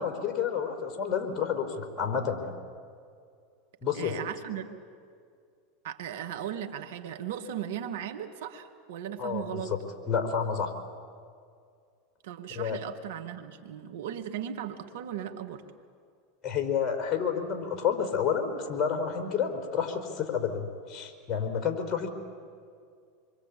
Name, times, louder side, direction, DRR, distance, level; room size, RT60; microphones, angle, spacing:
voice 1, 0.0-2.5 3.8-4.2 9.2-9.8 10.1-10.7 12.5-12.8 16.4-22.1, left 7 dB, 35° left, 4 dB, 4.6 m, -30 dB
voice 2, 3.9-4.7 5.8-9.7 12.2-15.6, right 9 dB, 70° right, 7 dB, 2.1 m, -37 dB
26.5 x 23.5 x 8.7 m, 2.2 s
hypercardioid pair, 90°, 0 cm